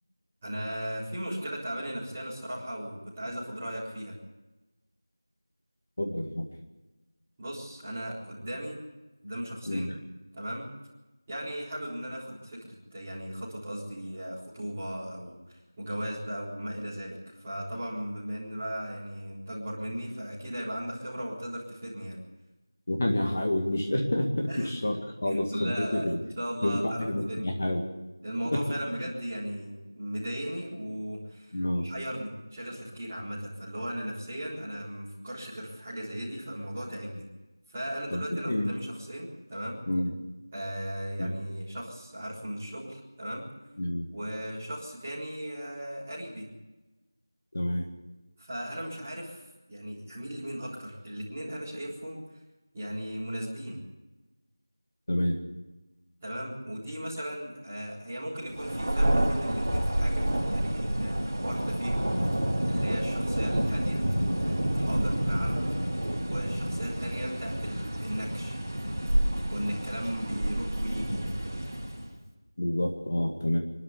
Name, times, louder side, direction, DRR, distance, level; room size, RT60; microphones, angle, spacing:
voice 1, 0.4-4.1 7.4-8.8 9.2-9.9 10.3-10.7 11.3-22.2 24.5-24.7 25.2-26.1 26.4-27.5 28.2-37.2 37.7-39.8 40.5-43.5 44.1-46.5 48.4-52.2 52.7-53.8 56.2-62.1 62.6-64.0 64.4-65.6 66.2-68.6 69.5-71.2, equal, 10° right, -13 dB, 4.2 m, -37 dB
voice 2, 6.0-6.5 9.7-9.9 22.9-26.2 26.6-27.8 28.5-28.6 31.5-31.9 38.1-38.7 39.9-40.1 41.2-41.4 43.8-44.1 47.5-47.9 55.1-55.4 72.6-73.6, left 1 dB, 25° left, 2 dB, 2.0 m, -28 dB
Thunder, 58.5-72.1, right 1 dB, 25° right, 3.7 m, -29 dB
25.5 x 12.5 x 8.5 m, 1.1 s
figure-of-eight pair, 180°, 2 cm